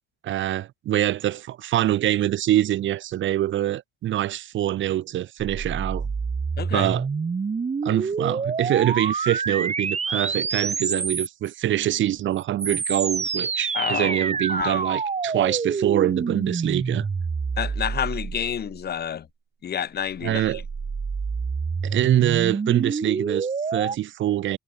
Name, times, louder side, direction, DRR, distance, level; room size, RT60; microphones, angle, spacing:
voice 1, 0.2-6.1 6.7-7.1 7.8-17.1 20.2-20.6 21.8-24.6, right 13 dB, 75° right, 1.2 m, -24 dB
sound 1, 5.4-11.5 12.4-19.0 20.0-24.0, right 5 dB, 35° right, 2.9 m, -27 dB
voice 2, 6.6-6.9 13.7-14.8 17.6-19.3 19.6-20.6, left 9 dB, 55° left, 1.5 m, -29 dB
cardioid pair, 90°, 20 cm